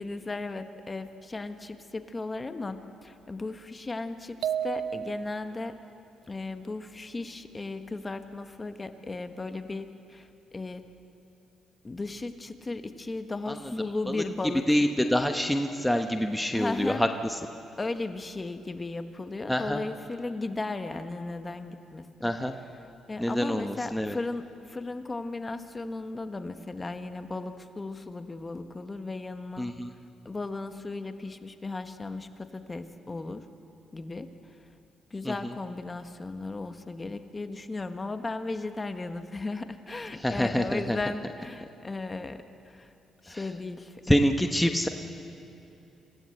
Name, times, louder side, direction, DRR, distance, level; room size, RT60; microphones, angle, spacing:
voice 1, 0.0-5.8 6.3-10.8 11.8-14.8 16.5-17.0 17.8-22.3 23.1-29.7 30.2-33.5 33.9-34.7 35.1-42.9 43.2-44.2, left 3 dB, 25° left, 9 dB, 1.3 m, -36 dB
sound 1, 4.4-5.6, right 9 dB, 75° right, 0.8 m, -32 dB
voice 2, 13.5-13.8 14.7-17.1 19.5-19.8 22.2-22.5 23.2-24.1 29.6-29.9 35.2-35.5 40.2-41.0 43.3-43.4 44.1-44.9, equal, 5° left, 5 dB, 1.1 m, -26 dB
26.5 x 16.5 x 7.9 m, 2.9 s
cardioid pair, 90°, 0 cm